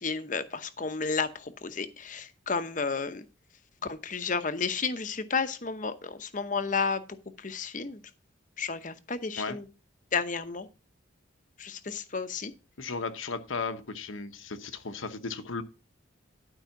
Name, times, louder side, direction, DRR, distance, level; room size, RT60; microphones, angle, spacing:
voice 1, 0.0-3.2 3.8-7.0 7.4-8.0 8.6-9.7 10.1-10.7 11.6-12.5, left 5 dB, 40° left, 0.8 m, -32 dB
voice 2, 12.8-15.6, left 4 dB, 80° left, 1.0 m, -35 dB
12.0 x 4.8 x 5.8 m
head